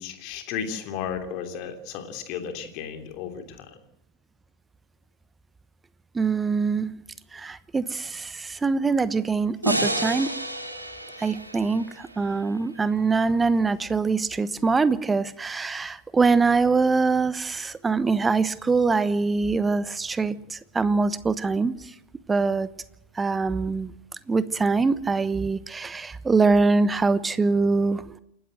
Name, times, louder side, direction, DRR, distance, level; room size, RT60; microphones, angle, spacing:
voice 1, 0.0-3.7, left 7 dB, 40° left, 6 dB, 3.1 m, -34 dB
voice 2, 6.1-6.9 7.3-10.3 11.2-21.7 22.3-22.7 23.2-23.9 24.3-28.0, right 4 dB, 15° right, 17 dB, 1.0 m, -23 dB
sound 1, 9.6-12.9, right 1 dB, 85° right, 2.7 m, -30 dB
28.0 x 13.0 x 7.8 m, 0.76 s
figure-of-eight pair, 90°, 0 cm